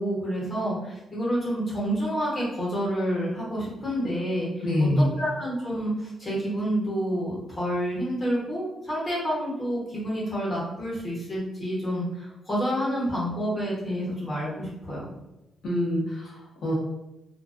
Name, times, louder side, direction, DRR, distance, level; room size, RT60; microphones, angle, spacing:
voice 1, 0.0-4.9 5.2-15.0, equal, 25° left, -6 dB, 0.9 m, -29 dB
voice 2, 4.6-5.1 15.6-16.7, left 1 dB, 60° left, -5 dB, 0.6 m, -25 dB
2.4 x 2.2 x 2.4 m, 0.93 s
cardioid pair, 165°, 0 cm